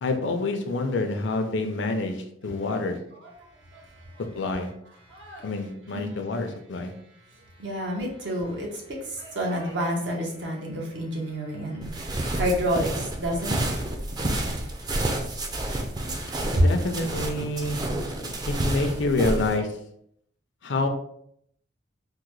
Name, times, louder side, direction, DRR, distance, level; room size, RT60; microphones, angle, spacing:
voice 1, 0.0-3.0 4.3-4.7 5.4-6.9 16.5-17.8 18.5-19.8 20.6-20.9, left 2 dB, 75° left, 6 dB, 0.5 m, -27 dB
voice 2, 3.2-4.2 5.1-5.5 5.9-6.2 7.2-13.6 16.6-16.7, equal, 75° right, 0 dB, 0.9 m, -29 dB
sound 1, 11.8-19.6, right 1 dB, 20° right, 0.4 m, -29 dB
3.7 x 2.1 x 3.1 m, 0.70 s
head